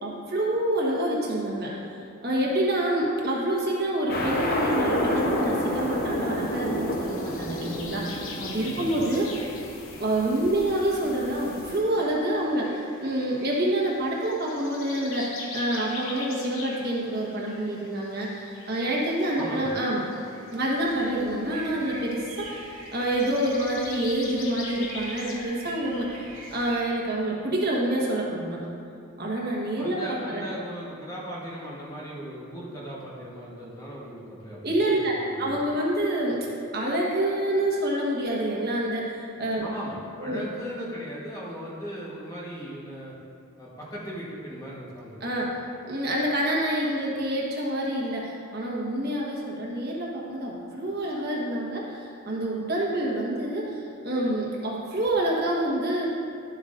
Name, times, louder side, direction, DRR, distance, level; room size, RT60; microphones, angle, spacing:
voice 1, 0.0-1.7 2.2-9.5 10.0-20.0 20.5-28.6 29.2-30.5 34.6-35.1 35.4-36.5 36.7-39.7 40.2-40.4 45.2-45.6 45.9-56.1, right 1 dB, 45° right, -4 dB, 1.3 m, -27 dB
sound 1, 4.1-11.8, left 1 dB, 45° left, 0.9 m, -30 dB
sound 2, 6.9-25.4, left 4 dB, 65° left, 0.9 m, -43 dB
voice 2, 8.6-9.0 19.3-19.7 29.7-35.7 39.6-43.1 43.6-45.2, equal, 15° left, -6 dB, 1.3 m, -38 dB
sound 3, 20.7-26.8, right 2 dB, 85° right, 1.9 m, -44 dB
11.5 x 7.7 x 2.6 m, 2.6 s
head